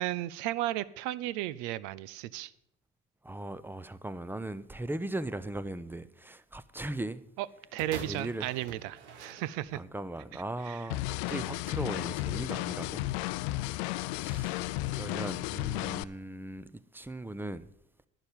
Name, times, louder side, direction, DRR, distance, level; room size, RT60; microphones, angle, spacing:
voice 1, 0.0-2.5 7.4-7.5 7.7-9.8 10.6-10.8, right 14 dB, 65° right, 0.6 m, -34 dB
voice 2, 3.2-7.2 7.9-8.5 9.7-13.0 13.5-14.6 14.9-17.7, right 1 dB, 5° right, 0.7 m, -38 dB
sound 1, 7.8-10.0 10.8-10.9, right 6 dB, 90° right, 1.1 m, -46 dB
sound 2, 10.9-16.0, left 17 dB, 70° left, 0.5 m, -33 dB
11.5 x 9.8 x 5.3 m
hypercardioid pair, 60°, 33 cm